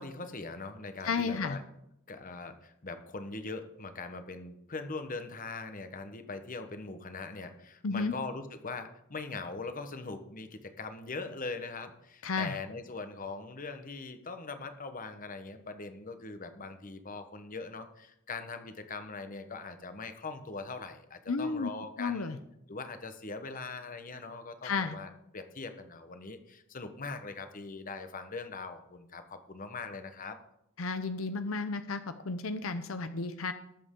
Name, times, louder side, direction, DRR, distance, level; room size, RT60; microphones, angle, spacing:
voice 1, 0.0-1.6 2.1-22.3 22.7-30.4, left 3 dB, 40° left, 8 dB, 1.1 m, -41 dB
voice 2, 1.0-1.6 7.8-8.1 12.2-12.5 21.3-21.7 22.0-22.4 24.6-25.0 30.8-33.5, left 4 dB, 75° left, 10 dB, 0.7 m, -32 dB
19.0 x 7.8 x 3.8 m, 0.80 s
head